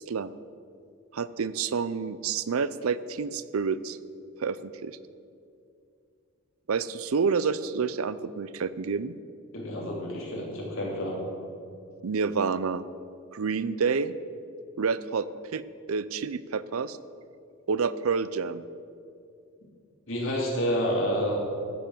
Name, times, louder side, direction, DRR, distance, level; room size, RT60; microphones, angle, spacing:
voice 1, 1.1-4.0 4.4-5.0 6.7-9.1 12.0-12.8 13.3-14.1 14.8-15.3 15.5-15.6 15.9-17.0 17.7-18.6, right 5 dB, 80° right, 16 dB, 0.5 m, -28 dB
voice 2, 9.5-11.2 20.1-21.4, equal, 60° left, -3 dB, 3.3 m, -29 dB
14.5 x 6.9 x 7.6 m, 2.5 s
head